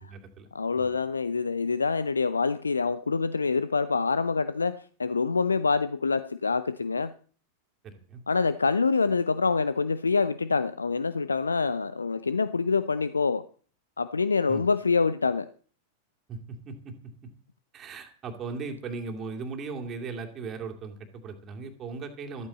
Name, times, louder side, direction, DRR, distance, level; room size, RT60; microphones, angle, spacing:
voice 1, 0.0-0.5 0.7-1.0 7.8-8.2 14.5-14.6 16.3-17.3 17.7-22.5, right 4 dB, 30° right, 3 dB, 2.5 m, -38 dB
voice 2, 0.5-7.1 8.3-13.4 14.0-15.5, left 4 dB, 75° left, 14 dB, 0.6 m, -26 dB
14.0 x 14.0 x 4.2 m, 0.42 s
figure-of-eight pair, 90°, 0 cm